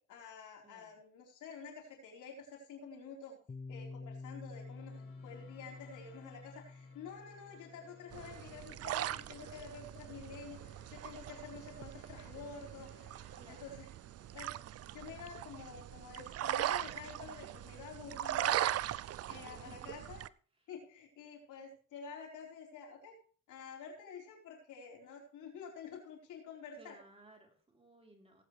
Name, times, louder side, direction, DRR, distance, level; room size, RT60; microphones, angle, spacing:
voice 1, 0.1-3.4 3.7-12.9 13.5-13.9 14.3-14.5 14.9-18.6 19.3-20.2 20.7-23.1 23.5-27.0, left 5 dB, 80° left, 0 dB, 4.1 m, -49 dB
Piano, 3.5-10.9, left 3 dB, 20° left, 0.7 m, -51 dB
sound 1, 4.4-14.8, left 4 dB, 50° left, 5.1 m, -64 dB
sound 2, 8.1-20.3, right 13 dB, 55° right, 0.5 m, -40 dB
voice 2, 13.3-13.8 14.6-14.7 18.9-20.1 26.7-28.4, right 2 dB, 20° right, 1 dB, 3.5 m, -60 dB
18.0 x 8.5 x 3.2 m, 0.43 s
cardioid pair, 90°, 30 cm